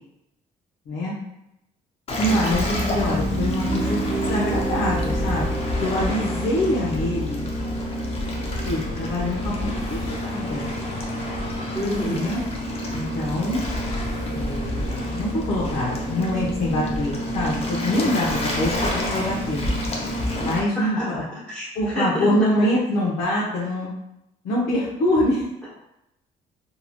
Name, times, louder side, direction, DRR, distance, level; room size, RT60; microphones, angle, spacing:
Waves surf, 2.1-20.6, left 1 dB, 35° left, 0.6 m, -28 dB
voice 1, 2.2-5.5 5.8-7.5 8.7-10.7 12.1-12.4 12.9-13.6 14.3-19.7 20.4-21.2 21.7-23.9 24.4-25.4, left 1 dB, 70° left, -7 dB, 0.8 m, -25 dB
Piano, 2.2-9.7, equal, 80° right, 0.6 m, -29 dB
voice 2, 11.7-12.2 20.8-21.1 21.5-21.7 21.9-22.7, equal, 5° left, -10 dB, 1.3 m, -27 dB
3.0 x 2.7 x 2.2 m, 0.85 s
cardioid pair, 110°, 17 cm